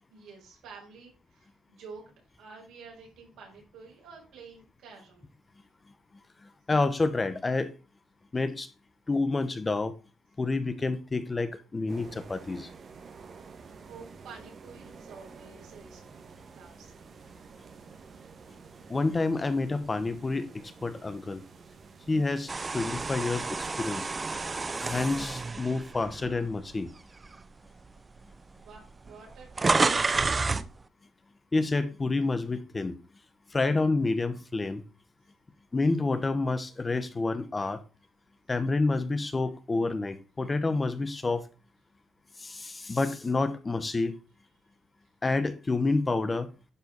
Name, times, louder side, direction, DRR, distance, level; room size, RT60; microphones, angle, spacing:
voice 1, 0.1-5.2 13.8-16.9 28.5-29.5 29.8-30.7, right 5 dB, 80° right, 5.0 m, -50 dB
voice 2, 6.4-7.7 8.3-8.7 9.1-9.9 10.4-12.7 18.9-21.4 22.1-24.1 24.8-26.9 31.5-33.0 33.5-34.8 35.7-37.8 38.5-41.5 42.4-44.1 45.2-46.5, left 3 dB, 25° left, 1.1 m, -28 dB
sound 1, 11.9-24.9, right 5 dB, 50° right, 1.5 m, -50 dB
sound 2, 22.5-26.7 27.2-27.4 28.3-28.4 28.6-30.7, right 3 dB, 25° right, 0.6 m, -29 dB
11.0 x 4.6 x 5.5 m
cardioid pair, 90°, 0 cm